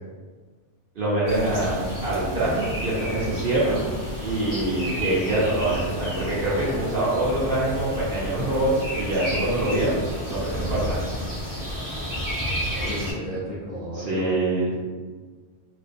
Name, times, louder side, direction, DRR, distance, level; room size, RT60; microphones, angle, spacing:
voice 1, 1.0-3.8 4.2-11.0 13.9-14.9, right 1 dB, 55° right, -8 dB, 0.7 m, -25 dB
sound 1, 1.3-13.1, equal, 20° right, 0.7 m, -31 dB
voice 2, 12.6-14.5, right 1 dB, 40° left, -10 dB, 0.6 m, -32 dB
2.3 x 2.1 x 2.5 m, 1.5 s
omnidirectional pair, 1.2 m